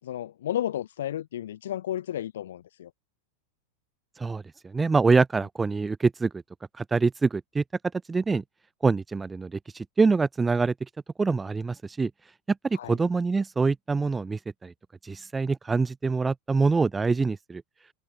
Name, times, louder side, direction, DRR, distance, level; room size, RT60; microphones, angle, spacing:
voice 1, 0.0-2.9 12.7-13.0, left 11 dB, 60° left, 7.7 m, -32 dB
voice 2, 4.2-6.3 6.8-7.6 8.1-8.4 8.8-10.7 11.2-12.1 12.6-14.7 15.0-17.6, right 4 dB, 10° right, 3.9 m, -25 dB
figure-of-eight pair, 90°, 0 cm